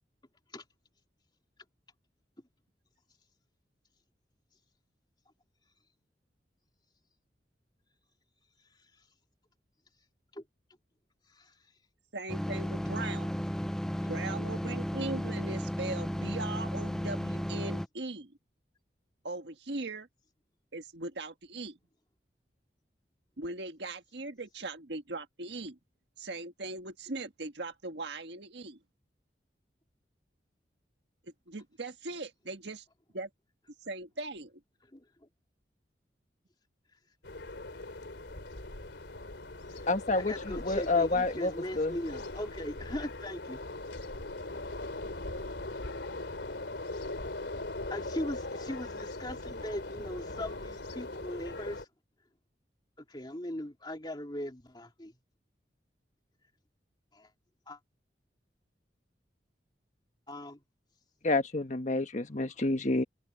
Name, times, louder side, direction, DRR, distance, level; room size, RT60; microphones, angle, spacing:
voice 1, 12.1-13.3 14.1-18.3 19.2-20.1 20.7-21.8 23.4-25.8 26.2-28.8 31.2-32.8 33.1-33.3 33.8-34.6, right 2 dB, 75° right, 1.6 m, -39 dB
sound 1, 12.3-17.9, equal, 5° left, 0.3 m, -34 dB
voice 2, 14.0-14.3 34.9-35.0 39.7-39.9 40.2-43.6 47.9-51.9 53.0-55.1 57.1-57.3 57.7-57.8 60.3-60.6 62.4-62.5, left 1 dB, 25° left, 2.7 m, -39 dB
sound 2, 37.2-51.8, left 2 dB, 85° left, 3.1 m, -40 dB
voice 3, 39.9-41.9 61.2-63.0, left 2 dB, 45° left, 1.5 m, -29 dB
open air
head